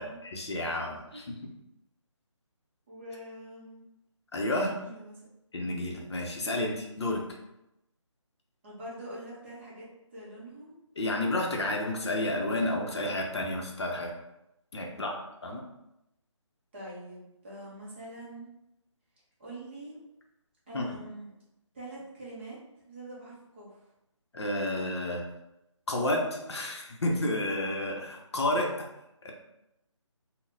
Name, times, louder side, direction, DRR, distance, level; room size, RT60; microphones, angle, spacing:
voice 1, 0.0-1.4 4.3-4.7 5.5-7.2 11.0-14.1 14.7-15.6 20.7-21.0 24.3-25.3 25.9-28.9 29.2-29.3, left 1 dB, 55° left, 0 dB, 0.6 m, -31 dB
voice 2, 2.9-3.8 4.6-5.3 8.6-10.8 14.9-15.2 16.7-18.5 19.4-20.0 20.7-21.3 21.7-22.6 22.8-23.8, right 1 dB, 20° right, -7 dB, 0.7 m, -44 dB
3.8 x 2.1 x 2.6 m, 0.88 s
figure-of-eight pair, 160°, 16 cm